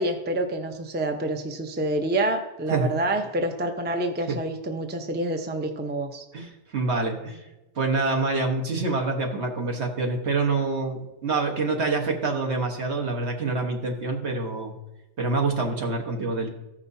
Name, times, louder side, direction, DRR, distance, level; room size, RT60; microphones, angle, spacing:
voice 1, 0.0-6.2, right 1 dB, 10° right, 4 dB, 0.5 m, -27 dB
voice 2, 6.3-7.5 7.7-14.7 15.2-16.5, right 3 dB, 65° right, 1 dB, 1.5 m, -26 dB
14.5 x 5.9 x 2.7 m, 1.0 s
omnidirectional pair, 1.2 m